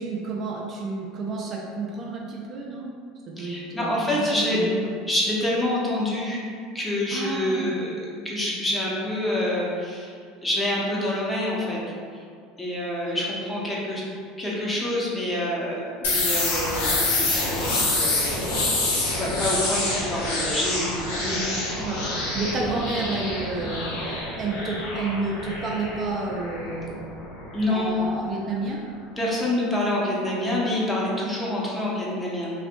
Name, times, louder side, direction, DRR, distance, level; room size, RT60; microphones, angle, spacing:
voice 1, 0.0-2.9 3.3-5.0 7.1-7.8 21.8-27.0 27.7-28.8, right 3 dB, 40° right, -2 dB, 0.4 m, -30 dB
voice 2, 3.4-4.6 5.1-6.4 6.7-7.9 8.2-10.1 10.4-11.8 12.6-14.0 14.4-18.2 19.2-21.4 21.8-22.1 27.5-27.9 29.2-32.5, left 1 dB, 15° left, -5 dB, 0.8 m, -27 dB
sound 1, 16.0-27.7, left 2 dB, 75° left, 0.6 m, -27 dB
2.5 x 2.5 x 2.5 m, 2.2 s
hypercardioid pair, 80°, 0 cm